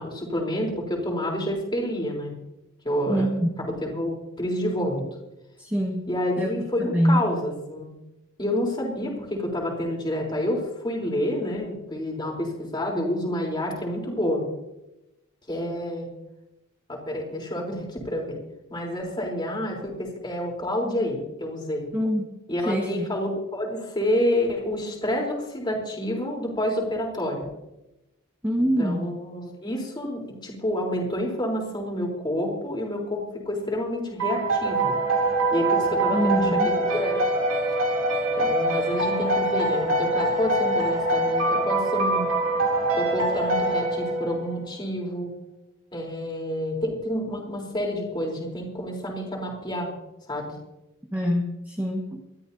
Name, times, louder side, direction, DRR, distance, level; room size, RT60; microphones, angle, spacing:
voice 1, 0.0-2.3 2.8-3.3 3.6-5.0 6.1-7.9 8.4-14.5 15.5-16.1 16.9-18.4 18.7-21.8 22.5-27.5 28.6-34.9 35.5-37.2 38.3-42.3 42.9-45.3 45.9-49.9 50.3-50.5, left 1 dB, 20° left, -1 dB, 3.8 m, -28 dB
voice 2, 3.1-3.6 5.6-6.0 6.4-6.5 6.8-7.3 21.9-22.2 22.6-23.1 28.4-29.1 36.1-36.7 51.1-52.2, equal, 10° right, -1 dB, 1.5 m, -24 dB
sound 1, 34.2-44.6, right 2 dB, 70° right, 3.0 m, -24 dB
25.5 x 13.0 x 2.8 m, 0.95 s
head